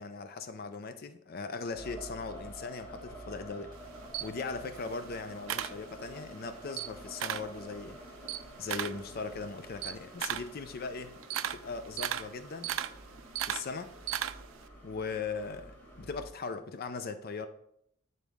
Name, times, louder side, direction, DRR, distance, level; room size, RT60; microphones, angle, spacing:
voice 1, 0.0-3.7 4.2-8.0 8.6-11.2 11.5-12.7 13.4-13.9 14.8-17.5, left 4 dB, 50° left, 0.5 m, -39 dB
sound 1, 1.7-16.3, right 1 dB, 10° left, 1.7 m, -49 dB
Camera, 3.7-6.3 6.6-7.6 7.9-14.7, right 11 dB, 75° right, 0.3 m, -37 dB
9.1 x 4.0 x 3.5 m
head